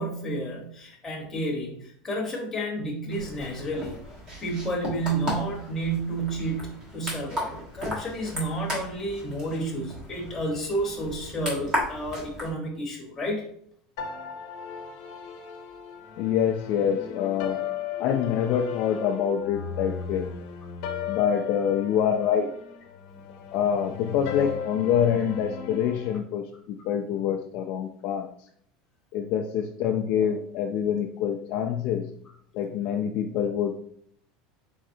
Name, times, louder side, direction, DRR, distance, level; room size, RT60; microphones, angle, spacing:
voice 1, 0.0-3.9 4.4-13.4, right 1 dB, 10° left, -3 dB, 1.1 m, -31 dB
sound 1, 3.1-12.5, equal, 25° right, 1.3 m, -35 dB
sound 2, 14.0-26.2, left 7 dB, 70° left, 0.8 m, -36 dB
voice 2, 16.2-17.7 18.0-20.3 21.1-22.5 23.3-28.3 29.1-32.1 32.5-33.8, left 8 dB, 45° left, 3 dB, 0.3 m, -26 dB
4.0 x 3.8 x 2.6 m, 0.64 s
cardioid pair, 175°, 3 cm